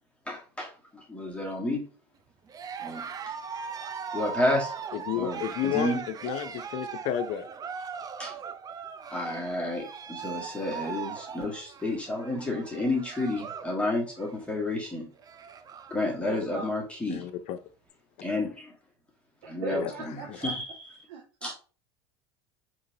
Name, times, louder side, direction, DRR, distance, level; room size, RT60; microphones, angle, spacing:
voice 1, 0.3-1.8 2.8-3.0 4.1-4.7 5.2-6.0 8.2-8.3 9.1-15.1 15.9-17.2 18.2-18.7 19.5-20.7 21.4-21.5, left 1 dB, 10° left, 1.3 m, -31 dB
Cheering, 2.5-13.7 14.0-14.5 14.9-15.0 15.2-16.0, right 6 dB, 25° right, 0.5 m, -39 dB
voice 2, 4.9-7.5 17.1-17.6 19.7-19.9 20.3-20.4, left 10 dB, 55° left, 0.6 m, -31 dB
voice 3, 16.3-16.7 19.4-20.6 21.1-21.5, right 4 dB, 70° right, 0.7 m, -39 dB
3.8 x 3.0 x 2.7 m
hypercardioid pair, 80°, 14 cm